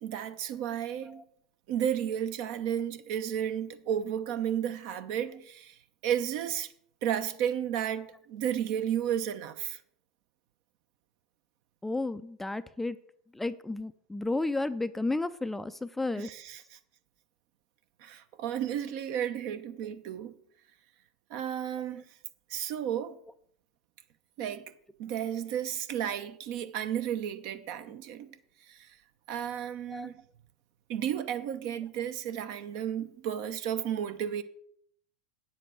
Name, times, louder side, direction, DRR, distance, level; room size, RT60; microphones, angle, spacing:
voice 1, 0.0-1.2 1.7-5.8 6.0-6.7 7.0-9.8 16.1-16.8 18.0-20.3 21.3-22.0 22.5-23.2 24.4-24.7 25.0-28.3 28.7-28.9 29.3-30.1 30.9-34.4, right 9 dB, 60° right, 1.0 m, -33 dB
voice 2, 11.8-13.0 13.4-16.3 21.9-22.0 29.9-30.1, left 2 dB, 5° left, 0.4 m, -32 dB
9.0 x 7.5 x 6.3 m
hypercardioid pair, 100°, 3 cm